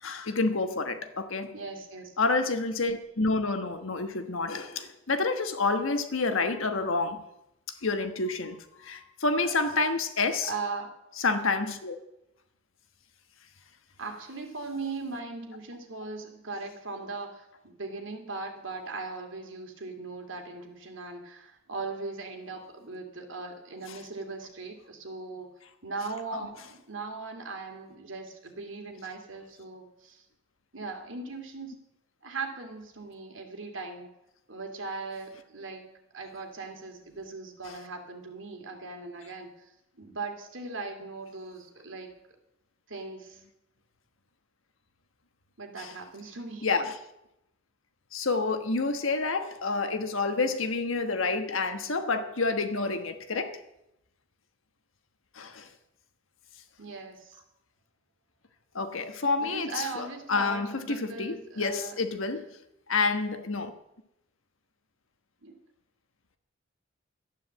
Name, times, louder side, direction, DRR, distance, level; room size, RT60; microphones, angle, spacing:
voice 1, 0.0-1.5 2.2-7.2 7.8-10.5 11.2-12.0 26.3-26.5 45.8-45.9 46.6-46.9 48.1-53.6 55.3-55.7 58.7-62.4 62.9-63.7, left 3 dB, 85° left, 8 dB, 1.3 m, -29 dB
voice 2, 1.5-2.1 9.4-9.6 10.4-10.9 14.0-25.5 25.8-30.2 30.7-31.7 32.2-34.1 34.5-42.1 42.9-43.4 45.6-46.7 56.8-57.4 59.4-62.0 65.4-65.6, right 3 dB, 70° right, 3 dB, 2.4 m, -39 dB
12.0 x 9.8 x 7.5 m, 0.86 s
head